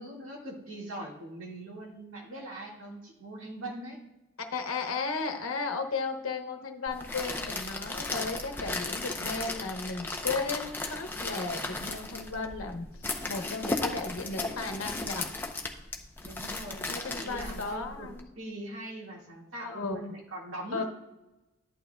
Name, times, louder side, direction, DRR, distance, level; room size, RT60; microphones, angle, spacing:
voice 1, 0.0-4.0 16.2-18.1 18.4-20.8, right 1 dB, 70° right, -1 dB, 1.9 m, -41 dB
voice 2, 4.5-12.9 13.3-15.3 16.9-18.3 19.6-20.0 20.7-20.8, left 4 dB, 75° left, 5 dB, 1.0 m, -35 dB
sound 1, 6.9-18.2, left 2 dB, 10° left, 0.5 m, -36 dB
11.0 x 8.5 x 2.3 m, 1.0 s
head